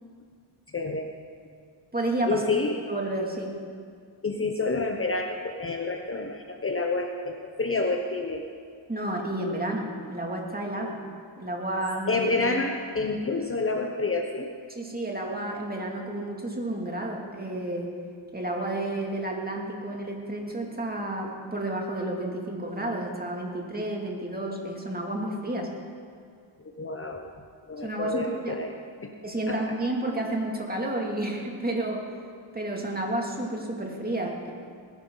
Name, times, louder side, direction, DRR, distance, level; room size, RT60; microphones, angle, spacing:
voice 1, 0.7-1.1 2.3-2.8 4.2-8.4 12.1-14.5 26.6-27.3 27.7-28.7 29.0-29.1 29.5-29.6, left 3 dB, 25° left, 3 dB, 1.0 m, -28 dB
voice 2, 1.9-2.4 2.9-3.5 8.9-11.0 11.4-12.3 14.7-17.9 18.3-25.7 27.8-28.6 29.2-32.1 32.5-34.5, right 1 dB, 20° right, 0 dB, 2.7 m, -31 dB
20.0 x 10.5 x 4.0 m, 2.2 s
cardioid pair, 75°, 50 cm